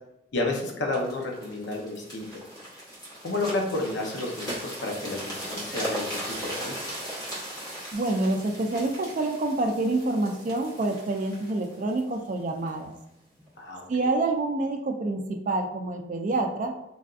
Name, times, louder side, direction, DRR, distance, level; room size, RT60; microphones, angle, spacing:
voice 1, 0.3-2.4 3.2-6.7 13.6-14.1, left 2 dB, 80° left, 0 dB, 0.7 m, -31 dB
sound 1, 0.9-12.8 13.4-13.6, equal, 20° left, 0.8 m, -38 dB
voice 2, 7.9-12.9 13.9-16.7, right 2 dB, 45° right, 4 dB, 0.3 m, -27 dB
3.3 x 2.5 x 2.3 m, 0.85 s
head